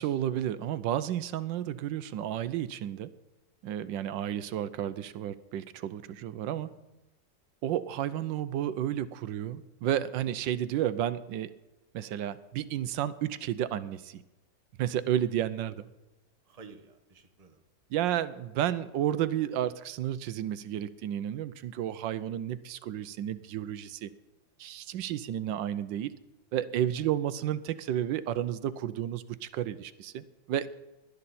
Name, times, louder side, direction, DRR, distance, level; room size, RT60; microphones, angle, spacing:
voice 1, 0.0-3.1 3.6-6.7 7.6-11.5 11.9-14.2 14.8-15.9 17.9-24.1 24.6-26.1 26.5-30.7, right 11 dB, 80° right, 14 dB, 1.3 m, -32 dB
voice 2, 6.1-6.7 16.4-17.6 21.3-21.4 26.5-27.1, right 5 dB, 25° right, 6 dB, 1.0 m, -54 dB
18.5 x 12.0 x 4.2 m, 1.0 s
omnidirectional pair, 2.0 m